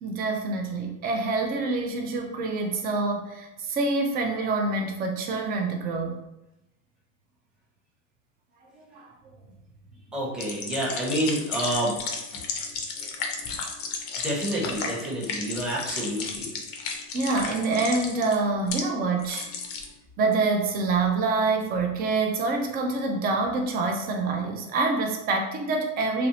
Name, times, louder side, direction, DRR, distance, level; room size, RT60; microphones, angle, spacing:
voice 1, 0.0-6.2 8.8-9.1 14.6-14.7 17.1-19.5 20.2-26.3, right 3 dB, 25° right, 3 dB, 0.3 m, -26 dB
voice 2, 10.1-11.9 14.2-16.5, right 1 dB, ahead, -6 dB, 0.7 m, -28 dB
sound 1, 10.4-18.8 19.2-19.9, left 5 dB, 40° left, 0.5 m, -34 dB
2.6 x 2.0 x 2.8 m, 0.91 s
supercardioid pair, 120°, 38 cm